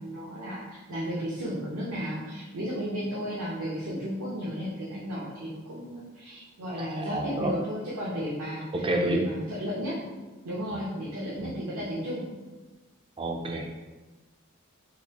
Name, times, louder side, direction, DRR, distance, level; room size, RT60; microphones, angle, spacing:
voice 1, 0.0-10.0 10.4-12.3, equal, 80° right, -6 dB, 0.7 m, -34 dB
voice 2, 6.8-7.5 8.7-9.2 10.7-10.8 11.4-11.5 13.2-13.7, right 2 dB, 25° right, 2 dB, 0.3 m, -29 dB
4.0 x 2.5 x 2.8 m, 1.2 s
head